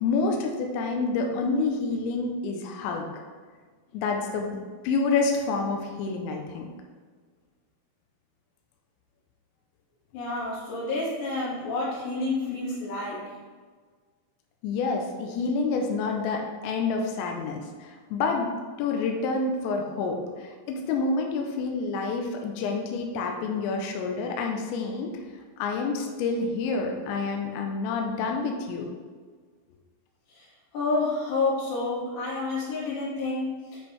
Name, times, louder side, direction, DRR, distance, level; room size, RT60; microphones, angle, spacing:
voice 1, 0.0-3.1 3.9-6.7 12.5-12.6 14.6-18.5 18.8-25.1 25.6-28.9, left 4 dB, 90° left, 2 dB, 2.6 m, -28 dB
voice 2, 10.1-13.3 30.3-30.5 30.7-33.8, left 3 dB, 65° left, -7 dB, 4.1 m, -29 dB
8.7 x 5.1 x 3.4 m, 1.5 s
omnidirectional pair, 5.9 m